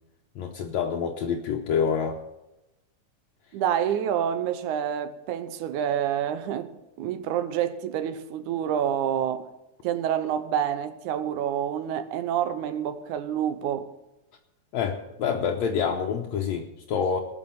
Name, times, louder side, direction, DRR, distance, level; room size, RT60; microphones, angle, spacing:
voice 1, 0.4-2.2 14.7-17.2, left 6 dB, 70° left, 2.0 m, -27 dB
voice 2, 3.5-6.7 7.0-9.4 9.8-13.9, right 9 dB, 90° right, 2.3 m, -28 dB
18.5 x 6.5 x 7.1 m
omnidirectional pair, 3.5 m